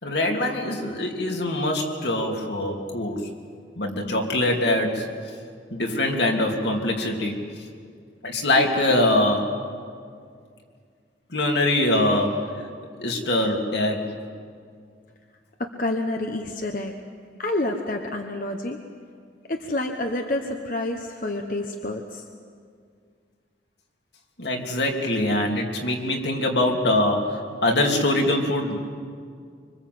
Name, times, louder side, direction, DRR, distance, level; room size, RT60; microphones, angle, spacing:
voice 1, 0.0-3.3 3.8-5.1 5.7-7.4 8.2-9.5 11.3-12.5 13.0-14.2 24.4-28.9, left 1 dB, 65° left, 1 dB, 3.1 m, -23 dB
voice 2, 15.6-16.9 17.4-18.8 19.5-22.2, left 2 dB, 45° left, 4 dB, 1.2 m, -28 dB
25.5 x 25.0 x 7.9 m, 2.2 s
head